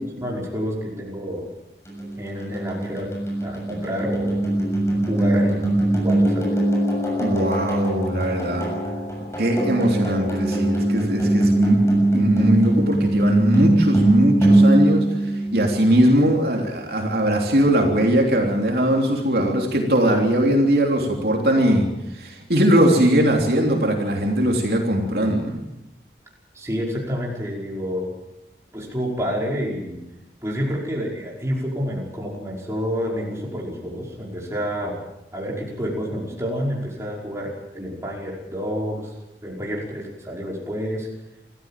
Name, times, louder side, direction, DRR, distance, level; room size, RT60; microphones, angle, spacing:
voice 1, 0.2-1.5 2.2-3.1 3.4-4.4 5.1-5.7 6.0-6.6 26.5-28.1 28.7-30.0 30.4-35.0 35.3-39.1 39.4-41.1, equal, 15° right, -3 dB, 5.4 m, -28 dB
sound 1, 1.9-16.0, right 1 dB, 15° left, 6.9 m, -21 dB
voice 2, 7.2-8.7 9.4-25.6, right 1 dB, 60° right, 1 dB, 3.4 m, -20 dB
27.0 x 15.0 x 7.6 m, 0.90 s
head